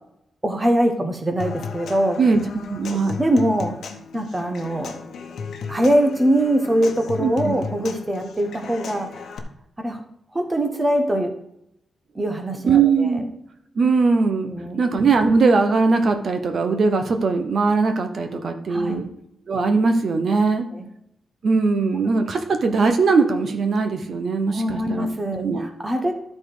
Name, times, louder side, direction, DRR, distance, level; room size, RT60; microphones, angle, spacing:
voice 1, 0.4-2.2 3.2-3.8 4.1-4.9 5.7-9.1 9.8-10.0 10.3-11.3 12.1-13.2 14.5-14.8 18.7-19.1 20.7-20.8 24.5-26.1, right 1 dB, 15° right, 5 dB, 1.0 m, -22 dB
Human voice / Acoustic guitar / Percussion, 1.4-9.4, left 5 dB, 75° left, 1.1 m, -35 dB
voice 2, 2.7-3.2 7.2-7.5 12.7-13.3 13.8-14.5 14.8-19.1 19.5-20.7 21.4-25.1 25.4-25.6, right 4 dB, 50° right, 6 dB, 1.0 m, -20 dB
13.0 x 4.3 x 5.0 m, 0.78 s
wide cardioid pair, 165°, 0 cm